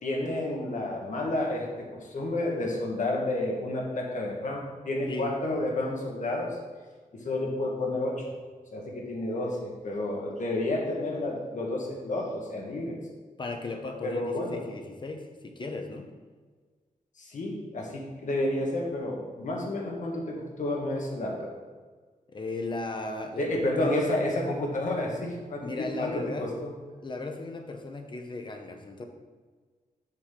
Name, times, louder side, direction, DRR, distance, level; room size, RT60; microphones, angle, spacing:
voice 1, 0.0-6.6 7.1-8.2 8.7-13.0 14.0-14.6 17.2-21.5 23.4-26.7, left 1 dB, 65° left, -1 dB, 1.6 m, -30 dB
voice 2, 13.4-16.1 22.3-24.2 25.6-26.5 27.0-29.1, left 2 dB, 35° left, 4 dB, 0.9 m, -36 dB
7.4 x 6.4 x 3.8 m, 1.4 s
wide cardioid pair, 130°, 14 cm